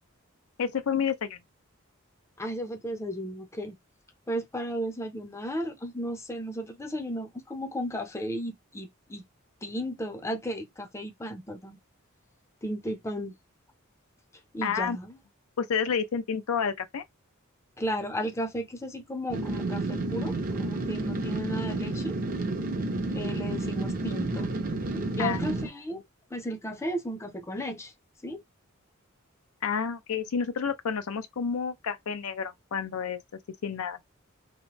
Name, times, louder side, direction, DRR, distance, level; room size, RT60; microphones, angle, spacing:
voice 1, 0.6-1.4 14.6-15.0 15.6-17.0 25.2-25.4 29.6-33.2 33.6-34.0, left 6 dB, 85° left, 0.5 m, -29 dB
voice 2, 2.4-3.7 4.3-9.2 9.6-11.8 12.6-13.3 14.5-15.2 17.8-22.1 23.1-24.5 25.1-26.0 26.3-27.9 28.2-28.4, equal, 15° left, 0.5 m, -34 dB
sound 1, 19.3-25.7, right 2 dB, 40° right, 0.6 m, -30 dB
2.9 x 2.0 x 2.9 m
head